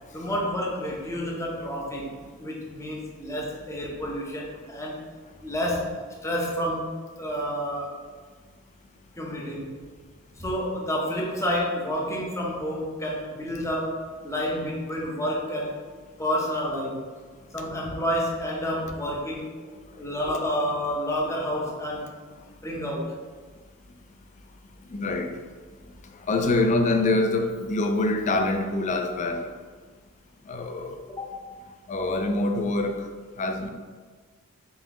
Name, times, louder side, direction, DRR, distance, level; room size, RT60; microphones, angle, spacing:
voice 1, 0.1-5.1 5.4-8.0 9.2-9.7 10.4-15.8 16.2-17.1 17.5-19.5 20.0-22.2 22.6-23.1 31.2-31.4, equal, 15° left, -3 dB, 0.7 m, -29 dB
voice 2, 24.9-25.4 26.3-29.5 30.5-31.0 31.9-33.1 33.4-33.7, left 2 dB, 35° left, 5 dB, 0.4 m, -25 dB
3.9 x 3.6 x 2.9 m, 1.5 s
head